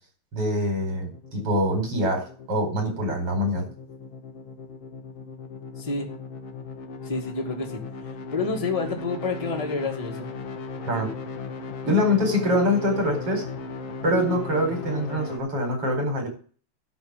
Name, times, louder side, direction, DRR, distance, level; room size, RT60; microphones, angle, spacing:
voice 1, 0.3-3.7 10.9-11.1 11.9-13.4 14.0-16.3, left 1 dB, 50° right, 2 dB, 5.3 m, -24 dB
sound 1, 0.8-15.4, left 4 dB, 60° left, 2.1 m, -37 dB
voice 2, 5.8-6.1 7.0-10.3, left 3 dB, 15° left, 1 dB, 1.8 m, -29 dB
11.5 x 5.2 x 8.4 m, 0.40 s
omnidirectional pair, 3.3 m